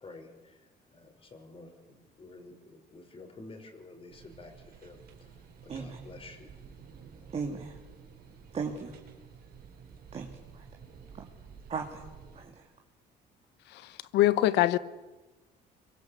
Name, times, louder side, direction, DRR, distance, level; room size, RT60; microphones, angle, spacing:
voice 1, 0.0-6.6, left 2 dB, 35° left, 5.9 m, -50 dB
sound 1, 4.1-12.5, right 6 dB, 65° right, 4.5 m, -52 dB
voice 2, 5.7-6.1 7.3-7.8 8.5-8.9 10.1-10.7 11.1-11.2 11.7-12.0 12.3-12.7, right 5 dB, 40° right, 3.0 m, -37 dB
voice 3, 13.7-14.8, left 15 dB, 85° left, 1.1 m, -24 dB
26.5 x 23.0 x 8.4 m
cardioid pair, 110°, 17 cm